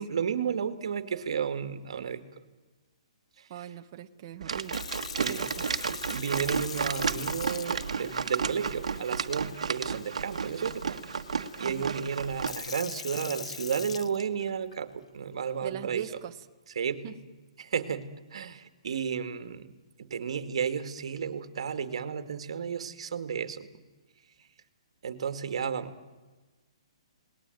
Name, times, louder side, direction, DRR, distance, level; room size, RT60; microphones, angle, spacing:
voice 1, 0.0-2.2 3.4-3.5 5.2-5.5 5.9-11.0 11.6-16.0 16.8-17.1 17.6-23.7 25.0-25.9, right 7 dB, 65° right, 11 dB, 2.1 m, -33 dB
voice 2, 3.5-4.8 5.2-5.5 11.6-11.9 15.6-16.4 17.0-17.2, right 11 dB, 40° right, 7 dB, 1.4 m, -40 dB
sound 1, 4.4-12.5, right 6 dB, 85° right, 1.6 m, -32 dB
Sink (filling or washing) / Fill (with liquid), 4.5-14.7 15.4-15.7, left 6 dB, 75° left, 1.2 m, -43 dB
29.5 x 19.5 x 9.2 m, 1.3 s
hypercardioid pair, 160°, 3 cm